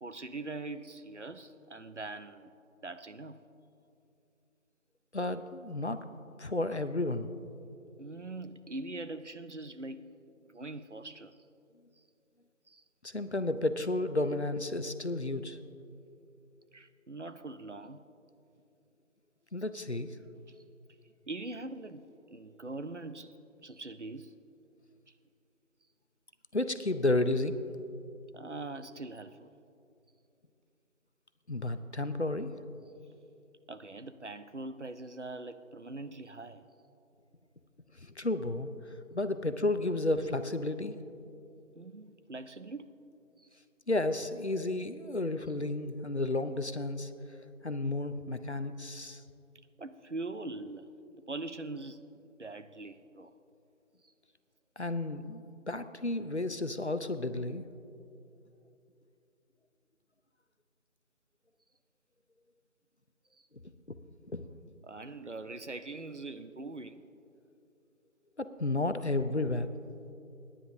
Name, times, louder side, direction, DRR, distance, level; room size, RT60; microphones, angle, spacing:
voice 1, 0.0-2.5 2.8-3.4 8.0-10.2 10.5-11.4 12.0-12.1 12.7-12.8 16.7-18.0 20.5-20.6 21.3-24.3 25.1-25.2 28.3-29.5 33.7-36.6 41.8-42.9 43.4-43.5 49.8-50.9 51.3-52.0 52.4-53.3 54.0-54.1 63.3-63.5 64.8-67.1, right 2 dB, 60° right, 0.6 m, -42 dB
voice 2, 5.1-6.0 6.4-7.3 13.0-15.6 19.5-20.2 26.5-27.6 31.5-32.5 38.0-38.7 39.1-40.9 43.9-47.1 47.6-49.2 54.8-57.7 63.9-64.0 64.3-64.5 68.4-69.7, left 2 dB, 55° left, 0.6 m, -32 dB
26.5 x 9.9 x 2.7 m
figure-of-eight pair, 180°, 41 cm